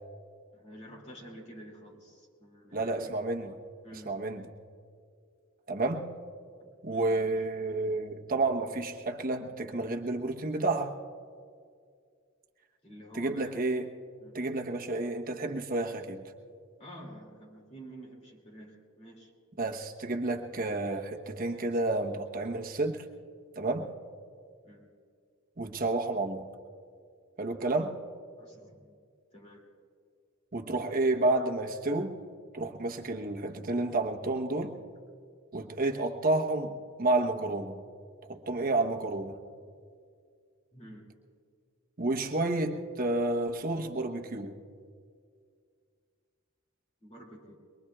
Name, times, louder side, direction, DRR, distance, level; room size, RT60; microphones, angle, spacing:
voice 1, 0.5-3.2 3.8-4.3 6.6-7.3 12.8-13.6 14.2-14.4 16.8-19.3 24.6-24.9 28.4-29.0 29.3-29.7 40.7-41.1 47.0-47.6, right 1 dB, 35° left, -2 dB, 2.7 m, -49 dB
voice 2, 2.7-3.5 4.0-4.4 5.7-6.0 6.8-10.9 13.1-13.9 14.3-16.3 19.6-23.0 23.6-23.9 25.6-26.5 27.4-27.9 30.5-32.2 32.5-34.8 35.5-37.8 38.3-39.4 42.0-44.5, right 2 dB, 45° right, 3 dB, 1.1 m, -30 dB
23.0 x 23.0 x 2.4 m, 2.2 s
head